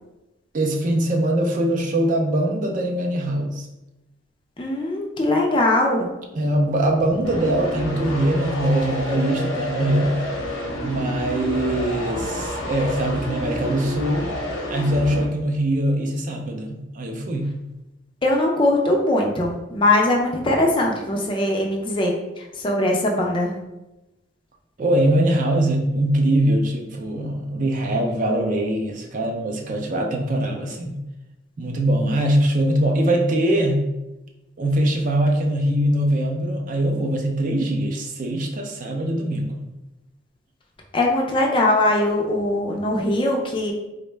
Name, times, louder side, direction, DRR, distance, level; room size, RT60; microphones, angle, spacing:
voice 1, 0.5-3.7 6.4-10.1 10.8-14.3 14.7-17.5 24.8-31.0 31.6-33.8 34.6-39.7, right 1 dB, 40° right, 2 dB, 0.4 m, -22 dB
voice 2, 4.6-6.1 18.2-23.5 40.9-43.7, left 1 dB, 25° left, 0 dB, 0.4 m, -21 dB
sound 1, 6.3-15.3, left 1 dB, 85° left, 0.8 m, -29 dB
3.6 x 2.1 x 3.2 m, 0.99 s
head